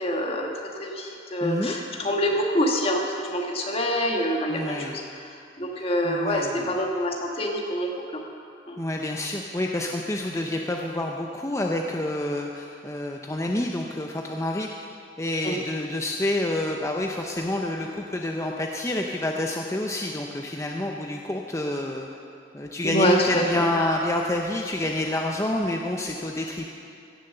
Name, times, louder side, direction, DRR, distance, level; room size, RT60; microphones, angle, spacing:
voice 1, 0.0-5.0 5.6-8.2 8.7-8.8 15.4-15.6 22.8-23.6, equal, 35° left, 0 dB, 1.5 m, -26 dB
voice 2, 1.4-1.8 4.5-5.0 5.7-6.9 8.8-14.7 15.2-22.1 22.5-26.7, left 1 dB, 15° left, 1 dB, 0.6 m, -28 dB
16.5 x 7.1 x 6.7 m, 2.5 s
head